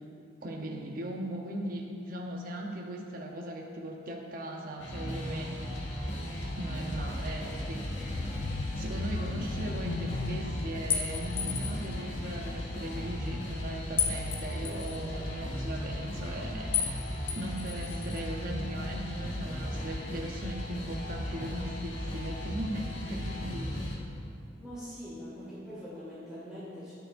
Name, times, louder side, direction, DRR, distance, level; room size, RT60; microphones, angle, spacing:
voice 1, 0.4-5.5 6.4-7.9 8.7-16.7 17.3-23.7, right 1 dB, 50° right, 0 dB, 0.9 m, -39 dB
sound 1, 4.8-24.0, equal, 90° left, 1.8 m, -36 dB
sound 2, 8.0-13.8 14.1-14.4 14.7-14.8, left 3 dB, 55° left, 0.4 m, -39 dB
sound 3, 10.9-11.9 14.0-15.0 16.7-17.0 17.3-18.2, left 7 dB, 30° left, 1.0 m, -32 dB
voice 2, 24.6-26.9, equal, 5° right, -12 dB, 2.3 m, -43 dB
19.0 x 6.8 x 2.6 m, 2.6 s
head